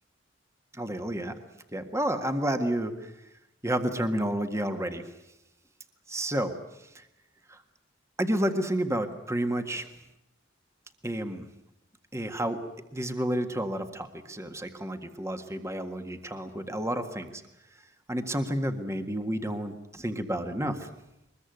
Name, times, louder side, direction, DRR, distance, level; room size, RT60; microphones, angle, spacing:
voice 1, 0.7-1.3 1.7-3.1 3.6-5.0 6.1-6.5 6.9-7.0 7.5-7.6 8.2-9.9 11.0-11.4 12.1-12.6 12.9-17.4 18.1-20.9, right 1 dB, 15° right, 7 dB, 1.6 m, -30 dB
23.0 x 21.5 x 9.2 m, 0.87 s
head